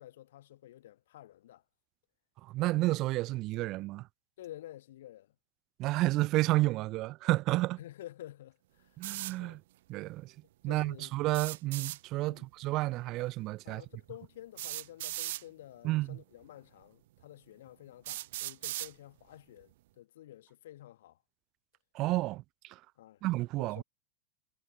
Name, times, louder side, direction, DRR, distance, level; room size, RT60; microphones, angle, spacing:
voice 1, 0.0-1.6 4.4-5.3 7.8-9.0 9.4-9.6 10.6-11.1 12.2-12.5 13.6-21.2 23.0-23.2 23.5-23.8, left 13 dB, 75° left, 2.4 m, -50 dB
voice 2, 2.4-4.1 5.8-7.8 9.0-9.6 9.9-10.3 10.6-13.8 15.8-16.2 21.9-22.8 23.2-23.8, right 19 dB, 35° right, 0.4 m, -31 dB
sound 1, 9.0-9.4 11.3-12.0 13.4-13.5 14.6-15.4 16.4-16.5 17.2-17.3 18.1-18.9, right 16 dB, 65° right, 1.4 m, -38 dB
supercardioid pair, 150°, 0 cm